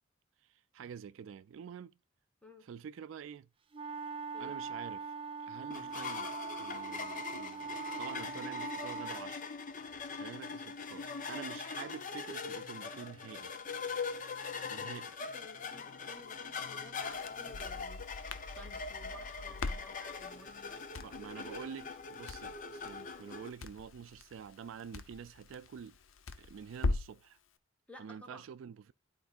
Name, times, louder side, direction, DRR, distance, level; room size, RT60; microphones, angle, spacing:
voice 1, 0.4-2.0 2.6-3.5 4.4-5.1 5.4-9.4 10.1-13.5 14.7-15.1 21.0-26.0 26.4-27.4 28.0-28.9, right 7 dB, 75° right, 0.3 m, -47 dB
sound 1, 3.7-9.2, right 5 dB, 30° right, 0.6 m, -42 dB
sound 2, 5.7-23.5, left 5 dB, 40° left, 0.7 m, -42 dB
voice 2, 14.5-14.9 15.3-18.0 18.5-20.8 27.9-28.4, left 1 dB, 5° left, 1.4 m, -55 dB
Crackle, 17.0-27.3, left 3 dB, 90° left, 0.6 m, -42 dB
11.5 x 4.5 x 2.4 m
head